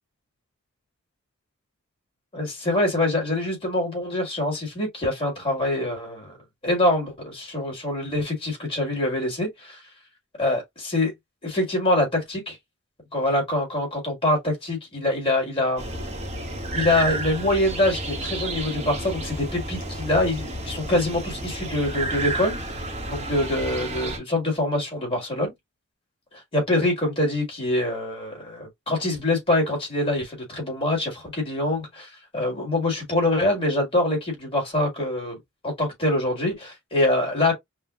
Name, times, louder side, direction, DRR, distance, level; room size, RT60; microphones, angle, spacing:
voice 1, 2.3-6.3 6.6-9.8 10.4-11.1 11.4-12.6 13.1-15.9 16.7-22.7 23.1-25.5 26.5-35.4 35.6-37.5, left 1 dB, 25° left, 1.8 m, -24 dB
sound 1, 15.8-24.2, right 2 dB, 30° right, 1.0 m, -31 dB
5.5 x 2.2 x 2.4 m
head